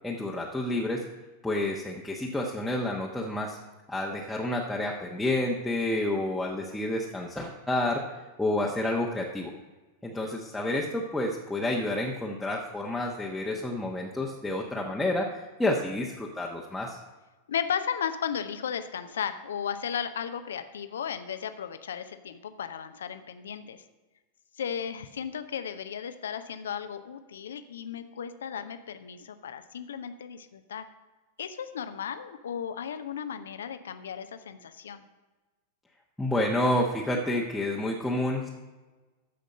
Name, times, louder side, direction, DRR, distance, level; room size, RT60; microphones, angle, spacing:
voice 1, 0.0-1.0 1.4-3.6 3.9-8.0 8.4-9.5 10.0-17.0 36.2-38.5, left 1 dB, 5° left, -3 dB, 1.1 m, -29 dB
voice 2, 17.5-23.8 24.6-30.9 31.4-35.0, left 8 dB, 65° left, 10 dB, 0.7 m, -35 dB
13.5 x 5.2 x 6.5 m, 1.2 s
figure-of-eight pair, 90°, 0 cm